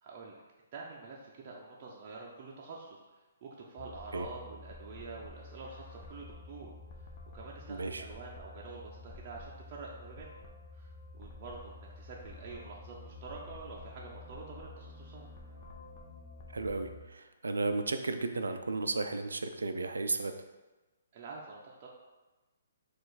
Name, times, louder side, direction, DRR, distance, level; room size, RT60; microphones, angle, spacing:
voice 1, 0.0-0.4 0.7-3.0 3.4-6.7 7.3-10.5 10.7-15.3 21.1-21.9, right 4 dB, 40° right, -3 dB, 0.6 m, -47 dB
sound 1, 3.8-17.1, left 2 dB, 35° left, 0.7 m, -50 dB
voice 2, 7.7-8.0 16.5-20.3, right 3 dB, 85° right, 7 dB, 0.4 m, -34 dB
4.6 x 2.5 x 4.0 m, 1.1 s
hypercardioid pair, 140°, 0 cm